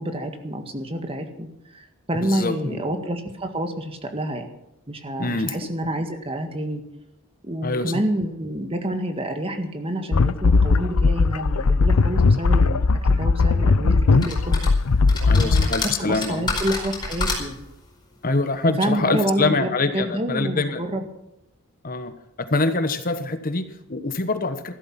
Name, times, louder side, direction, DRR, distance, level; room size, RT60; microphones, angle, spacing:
voice 1, 0.0-4.5 4.9-6.8 7.4-12.8 13.1-14.7 15.4-17.6 18.8-21.0, right 1 dB, 25° right, 6 dB, 1.8 m, -28 dB
voice 2, 2.1-2.8 5.2-5.6 7.6-8.0 15.2-16.5 18.2-20.8 21.8-22.1 22.4-24.7, left 3 dB, 40° left, 9 dB, 1.1 m, -25 dB
bubbling sewer, 10.1-15.7, left 3 dB, 85° left, 0.6 m, -18 dB
sound 1, 14.2-14.7 15.1-17.6, left 3 dB, 20° left, 4.8 m, -27 dB
14.5 x 12.5 x 5.9 m, 0.89 s
head